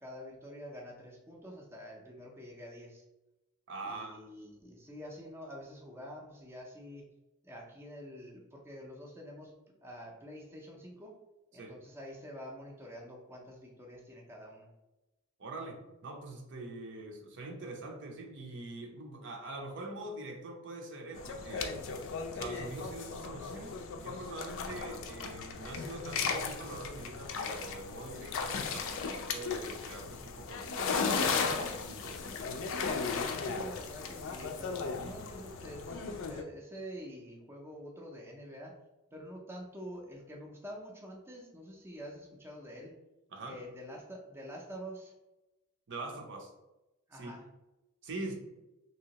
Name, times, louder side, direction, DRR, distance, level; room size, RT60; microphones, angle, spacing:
voice 1, 0.0-3.0 3.8-7.0 7.4-9.5 9.8-11.2 11.5-14.7 33.3-38.8 39.1-42.9 43.4-45.1 47.1-47.4, equal, 10° right, -1 dB, 0.5 m, -47 dB
voice 2, 3.7-4.2 11.5-11.8 15.4-21.8 22.3-32.5 43.3-43.6 45.9-46.5 47.1-47.3 48.0-48.3, right 2 dB, 60° right, 1 dB, 0.6 m, -44 dB
sound 1, 21.1-36.4, left 5 dB, 65° left, 0.4 m, -36 dB
3.3 x 2.8 x 2.8 m, 0.98 s
head